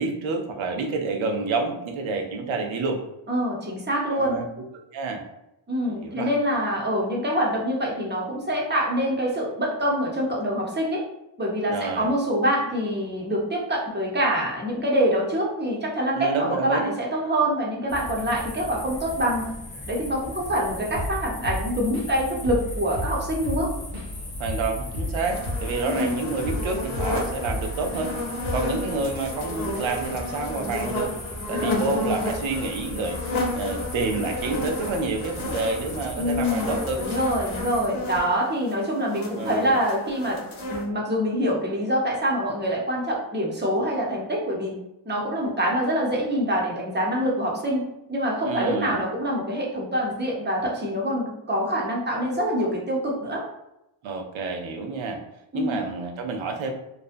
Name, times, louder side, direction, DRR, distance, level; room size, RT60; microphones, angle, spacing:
voice 1, 0.0-3.0 4.1-4.5 4.9-5.2 6.0-6.3 11.7-12.1 16.2-16.9 24.4-28.1 28.5-31.1 31.5-37.0 39.3-39.7 48.4-49.0 54.0-55.2 55.5-56.7, right 3 dB, 90° right, 3 dB, 0.6 m, -28 dB
voice 2, 3.3-4.4 5.7-11.0 11.4-19.5 19.9-23.7 25.8-26.1 31.5-32.0 36.2-40.4 40.7-44.7 45.1-47.8 48.1-53.5 55.5-55.8, equal, 25° right, -2 dB, 0.6 m, -25 dB
sound 1, 17.9-37.9, left 1 dB, 20° left, 0.3 m, -37 dB
Drum kit / Drum, 20.9-21.2 21.4-22.2 22.4-22.7 22.9-26.1 26.4-27.7 27.9-28.1 28.4-28.8, equal, 70° right, 0.9 m, -31 dB
sound 2, 25.2-40.8, left 2 dB, 90° left, 0.8 m, -32 dB
2.5 x 2.1 x 2.5 m, 0.85 s
cardioid pair, 110°, 47 cm